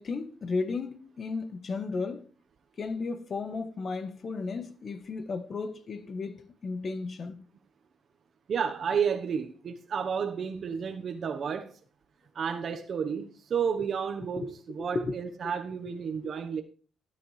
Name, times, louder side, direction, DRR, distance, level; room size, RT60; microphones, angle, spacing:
voice 1, 0.0-2.3 2.8-7.4 14.3-15.2 16.2-16.3, left 4 dB, 45° left, 1.3 m, -34 dB
voice 2, 8.5-11.8 12.3-16.6, right 6 dB, 55° right, 1.1 m, -31 dB
12.0 x 10.5 x 3.3 m
cardioid pair, 90°, 0 cm